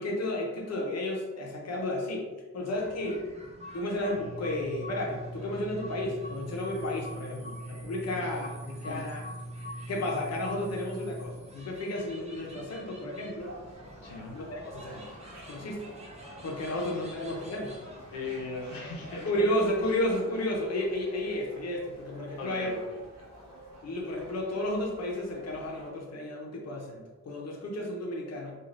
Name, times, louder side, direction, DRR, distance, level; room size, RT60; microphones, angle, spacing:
voice 1, 0.0-2.3 2.5-3.3 3.7-9.2 9.9-13.5 14.3-15.0 15.5-15.9 16.4-17.7 19.2-22.7 23.8-28.5, left 1 dB, 50° left, -1 dB, 0.6 m, -32 dB
sound 1, 2.7-19.9, equal, 20° right, 0.4 m, -48 dB
sound 2, 4.1-11.3, right 1 dB, 85° right, 0.8 m, -42 dB
sound 3, 13.3-25.9, equal, 55° right, 0.9 m, -49 dB
voice 2, 14.0-14.3 16.7-17.1 18.1-19.3 19.9-20.0 22.4-22.9, left 3 dB, 90° left, -2 dB, 0.7 m, -39 dB
3.1 x 2.4 x 2.5 m, 1.2 s
wide cardioid pair, 170°, 33 cm